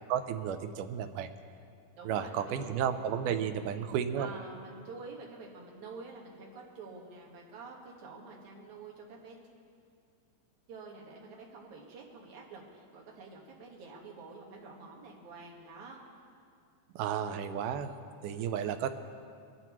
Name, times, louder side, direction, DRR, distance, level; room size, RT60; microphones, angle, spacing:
voice 1, 0.1-1.3 2.1-4.3 17.0-17.9 18.2-18.9, right 8 dB, 90° right, 8 dB, 2.2 m, -32 dB
voice 2, 1.9-2.9 4.2-9.4 10.7-16.0 18.3-18.6, right 4 dB, 70° right, -2 dB, 3.0 m, -48 dB
21.5 x 13.0 x 3.1 m, 2.3 s
omnidirectional pair, 3.6 m